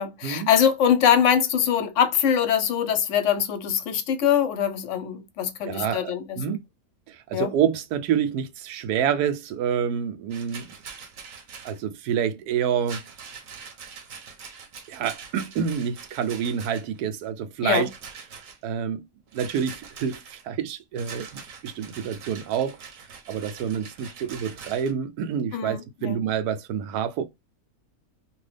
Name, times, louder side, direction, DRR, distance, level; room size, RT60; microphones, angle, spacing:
voice 1, 0.0-6.6 7.3-7.5 17.6-17.9 25.5-26.2, left 8 dB, 65° left, 0.9 m, -23 dB
voice 2, 5.7-6.6 7.1-10.7 11.6-13.0 14.9-17.9 18.6-19.1 19.3-22.8 23.3-25.8 26.0-27.3, right 8 dB, 90° right, 1.1 m, -27 dB
Rattle, 10.3-11.8 12.8-17.0 17.7-18.6 19.3-20.4 21.0-24.9, right 6 dB, 65° right, 1.1 m, -43 dB
2.9 x 2.7 x 3.3 m
omnidirectional pair, 1.6 m